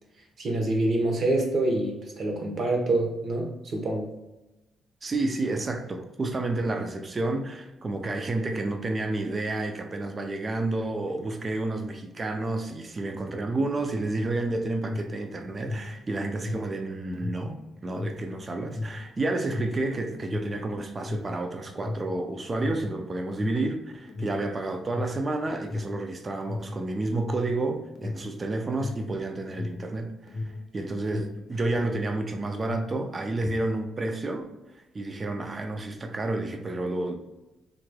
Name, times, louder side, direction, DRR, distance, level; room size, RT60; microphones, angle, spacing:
voice 1, 0.4-4.1, right 2 dB, 55° right, 0.9 m, -26 dB
voice 2, 5.0-34.5 34.9-37.2, right 2 dB, 30° right, 0.5 m, -30 dB
Alarm, 14.8-32.3 32.5-33.8, left 2 dB, 55° left, 0.6 m, -36 dB
3.8 x 3.1 x 2.2 m
cardioid pair, 90°, 0 cm